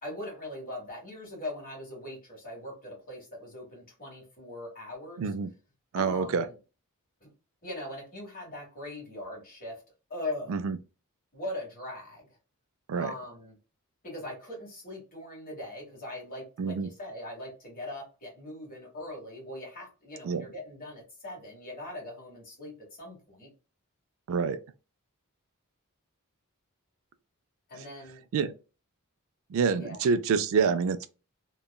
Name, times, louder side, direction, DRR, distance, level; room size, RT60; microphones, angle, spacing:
voice 1, 0.0-5.3 5.9-6.5 7.2-7.3 7.6-9.8 10.1-10.5 11.3-12.3 12.9-13.5 14.0-23.5 27.7-28.2 29.7-30.0, left 1 dB, 40° left, 1.4 m, -41 dB
voice 2, 5.2-5.5 5.9-6.5 10.5-10.8 12.9-13.1 16.6-16.9 20.2-20.4 24.3-24.6 28.3-28.5 29.5-31.1, right 5 dB, 65° right, 0.3 m, -27 dB
2.8 x 2.3 x 2.3 m
head